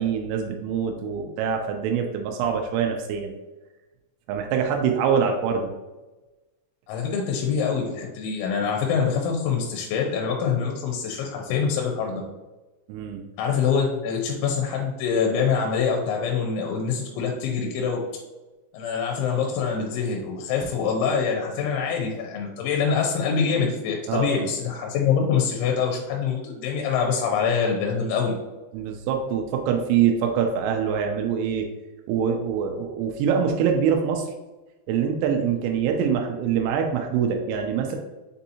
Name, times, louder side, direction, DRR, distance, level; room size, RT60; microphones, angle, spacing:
voice 1, 0.0-3.3 4.3-5.7 12.9-13.2 24.1-24.5 28.7-31.7 32.1-34.3 34.9-38.0, right 7 dB, 90° right, 3 dB, 3.0 m, -24 dB
voice 2, 6.9-12.2 13.4-18.0 18.7-28.3, left 6 dB, 85° left, 1 dB, 2.9 m, -25 dB
6.9 x 2.7 x 2.6 m, 1.1 s
omnidirectional pair, 5.4 m